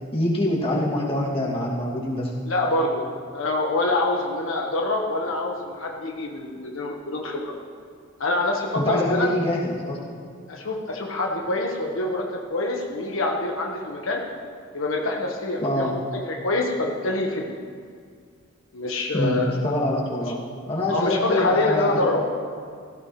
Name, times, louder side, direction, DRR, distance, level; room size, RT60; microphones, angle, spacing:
voice 1, 0.1-2.3 8.8-10.0 15.6-15.9 19.1-22.0, left 1 dB, 30° left, -5 dB, 2.4 m, -25 dB
voice 2, 2.5-3.1 3.3-7.5 8.2-9.3 10.5-14.2 14.7-17.6 18.7-19.5 20.2-20.3 20.9-22.2, left 2 dB, 80° left, -1 dB, 1.3 m, -25 dB
17.0 x 15.0 x 3.2 m, 2.1 s
head